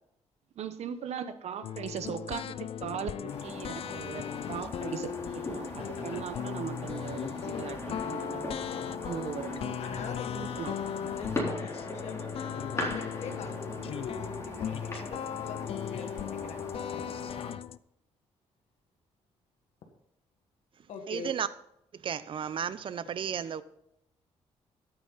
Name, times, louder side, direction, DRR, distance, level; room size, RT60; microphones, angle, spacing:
voice 1, 0.6-8.7 9.0-9.8 10.3-11.1, right 7 dB, 70° right, 10 dB, 1.1 m, -39 dB
sound 1, 1.6-17.8, left 9 dB, 55° left, 0.4 m, -37 dB
sound 2, 3.3-17.5, left 1 dB, 25° left, 3.7 m, -40 dB
voice 2, 9.8-10.5 11.0-16.6 16.9-17.0 20.9-21.3, left 5 dB, 75° left, 3 dB, 1.7 m, -43 dB
voice 3, 21.1-21.5 21.9-23.6, right 8 dB, 50° right, 15 dB, 0.6 m, -33 dB
13.0 x 8.7 x 4.1 m, 0.77 s
cardioid pair, 110°, 12 cm